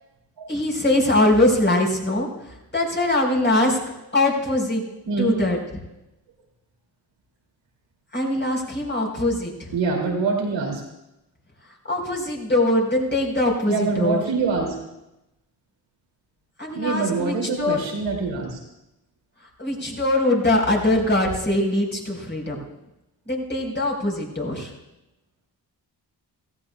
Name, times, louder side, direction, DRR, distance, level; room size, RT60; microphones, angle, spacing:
voice 1, 0.5-2.3 2.7-3.8 4.1-4.8 5.2-5.6 8.1-9.7 11.9-14.2 16.6-17.8 19.6-22.6 23.3-24.7, left 1 dB, 25° left, -1 dB, 4.8 m, -22 dB
voice 2, 5.1-5.4 9.7-10.8 13.7-14.8 16.7-18.6, right 4 dB, 80° right, 0 dB, 3.0 m, -24 dB
17.0 x 14.5 x 2.4 m, 0.92 s
supercardioid pair, 50°, 43 cm